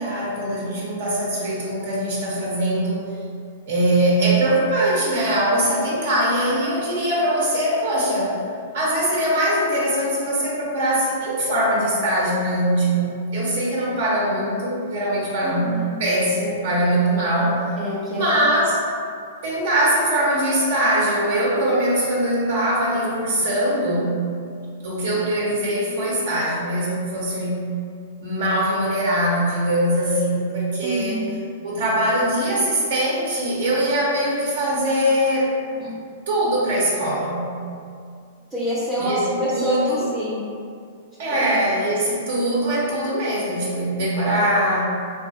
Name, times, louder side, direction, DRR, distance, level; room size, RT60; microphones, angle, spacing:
voice 1, 0.0-3.0 3.7-8.4 8.7-15.7 16.0-17.8 18.1-18.8 19.4-24.2 24.8-27.6 28.2-31.2 31.6-35.5 36.3-37.6 39.0-40.1 41.2-44.8, right 1 dB, 65° right, -5 dB, 0.6 m, -22 dB
voice 2, 15.4-16.0 17.8-18.2 30.8-31.4 35.8-35.9 38.5-40.4 41.3-41.5, equal, 15° right, -11 dB, 0.5 m, -27 dB
2.5 x 2.4 x 2.4 m, 2.3 s
hypercardioid pair, 130°, 0 cm